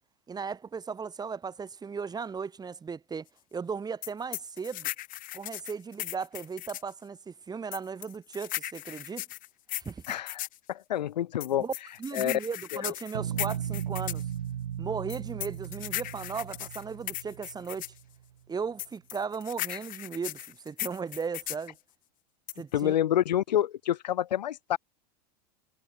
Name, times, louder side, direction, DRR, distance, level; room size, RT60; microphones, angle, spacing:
voice 1, 0.3-4.9 5.3-9.2 9.8-10.1 11.6-11.7 12.0-14.2 14.8-17.8 18.5-21.8 22.6-22.9, right 5 dB, 20° right, 4.7 m, -36 dB
sound 1, 4.0-6.9 7.7-10.6 11.4-14.2 15.1-18.0 18.8-21.7 22.5-22.8, left 16 dB, 40° left, 1.4 m, -37 dB
voice 2, 10.1-11.7 12.1-12.3 12.7-12.9 22.7-24.8, left 11 dB, 85° left, 2.5 m, -28 dB
sound 2, 13.1-18.0, right 10 dB, 90° right, 4.4 m, -36 dB
hypercardioid pair, 115°, 21 cm